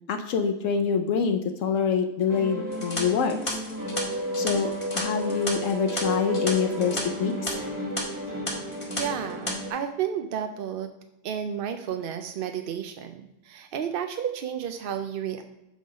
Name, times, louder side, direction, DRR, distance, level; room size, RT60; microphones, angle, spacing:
voice 1, 0.1-3.6 4.4-7.6, left 6 dB, 80° left, 6 dB, 1.0 m, -26 dB
sound 1, 2.3-9.7, equal, 15° right, 1.1 m, -32 dB
sound 2, 2.7-7.0 7.3-7.5 8.0-8.1 8.5-9.0 9.3-9.5, left 1 dB, 25° left, 1.4 m, -33 dB
voice 2, 9.0-10.9 11.2-13.1 13.4-15.4, right 8 dB, 60° right, 7 dB, 0.6 m, -31 dB
8.4 x 3.9 x 5.2 m, 0.94 s
omnidirectional pair, 1.3 m